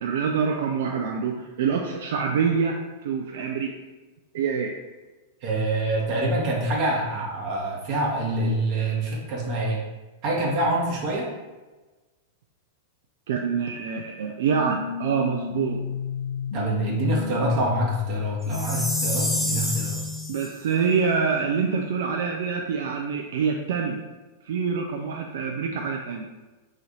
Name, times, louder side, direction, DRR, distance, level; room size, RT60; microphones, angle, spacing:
voice 1, 0.0-3.7 4.3-4.7 13.3-15.8 20.3-24.0 24.5-26.3, right 6 dB, 65° right, 2 dB, 0.3 m, -26 dB
voice 2, 5.4-9.8 10.2-11.3 16.5-20.1, right 1 dB, 50° right, -3 dB, 1.0 m, -26 dB
sound 1, 14.5-20.5, left 7 dB, 65° left, 0.8 m, -31 dB
Chime, 18.5-20.5, left 1 dB, 5° left, 0.7 m, -29 dB
3.1 x 2.6 x 3.7 m, 1.2 s
hypercardioid pair, 100°, 0 cm